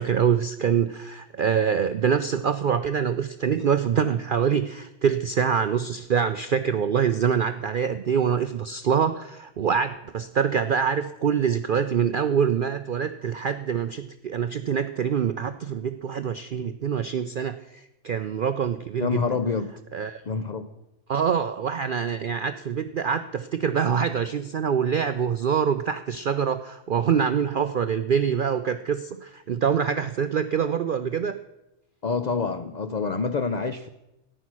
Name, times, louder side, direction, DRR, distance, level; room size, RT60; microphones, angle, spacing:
voice 1, 0.0-19.2 19.9-20.2 21.1-31.4, right 7 dB, 70° right, 10 dB, 0.4 m, -25 dB
voice 2, 19.0-19.7 20.2-20.7 32.0-33.9, left 4 dB, 75° left, 10 dB, 0.4 m, -27 dB
14.0 x 10.0 x 6.0 m, 0.94 s
omnidirectional pair, 1.5 m